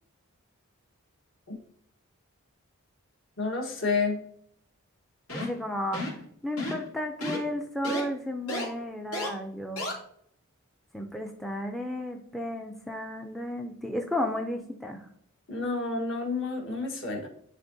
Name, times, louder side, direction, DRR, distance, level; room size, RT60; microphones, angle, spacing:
voice 1, 3.4-4.2 15.5-17.3, left 4 dB, 60° left, 1 dB, 1.4 m, -29 dB
sound 1, 5.3-5.6 5.9-6.2 6.6-6.9 7.2-7.4 7.8-8.0 8.5-8.6 9.1-9.3 9.8-9.9, left 1 dB, 90° left, 2.8 m, -32 dB
voice 2, 5.3-6.0 6.4-9.8 10.9-15.0, left 1 dB, ahead, 4 dB, 0.4 m, -33 dB
10.5 x 3.7 x 2.7 m, 0.67 s
head